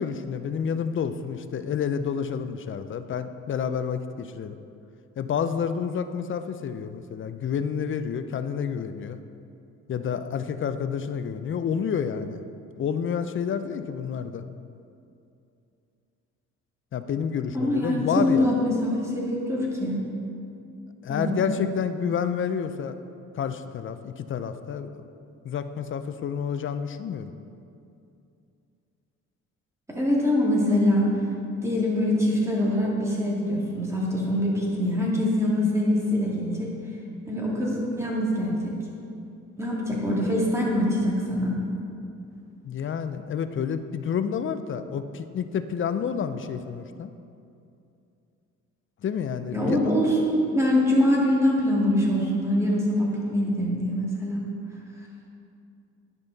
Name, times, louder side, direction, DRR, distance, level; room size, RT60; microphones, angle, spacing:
voice 1, 0.0-4.6 5.2-9.2 9.9-12.4 12.8-14.4 16.9-18.6 21.0-23.0 23.3-25.0 25.4-27.3 42.7-47.1 49.0-49.8, left 7 dB, 45° left, 10 dB, 0.5 m, -29 dB
voice 2, 17.5-20.0 21.1-21.6 29.9-31.1 31.6-36.7 37.3-38.7 39.6-41.6 49.5-54.4, left 1 dB, 10° right, -5 dB, 2.1 m, -24 dB
10.5 x 5.5 x 4.0 m, 2.6 s
cardioid pair, 90°, 30 cm